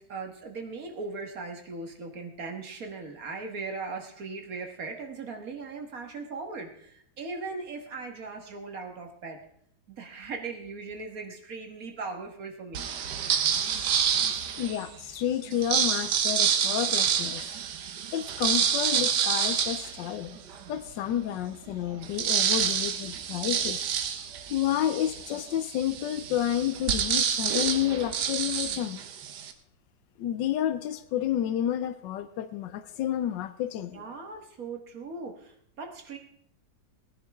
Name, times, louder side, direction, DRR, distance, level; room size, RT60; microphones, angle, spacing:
voice 1, 0.0-9.4 9.9-12.9 33.9-36.2, right 4 dB, 55° right, 3 dB, 1.9 m, -39 dB
sound 1, 12.7-14.9 15.5-20.7 21.2-21.3 21.5-29.5, right 8 dB, 70° right, 1.5 m, -28 dB
voice 2, 14.6-17.4 18.1-20.4 20.7-23.8 24.5-29.0 30.2-34.0, left 11 dB, 85° left, 13 dB, 1.3 m, -30 dB
19.0 x 10.0 x 3.5 m, 0.67 s
omnidirectional pair, 1.9 m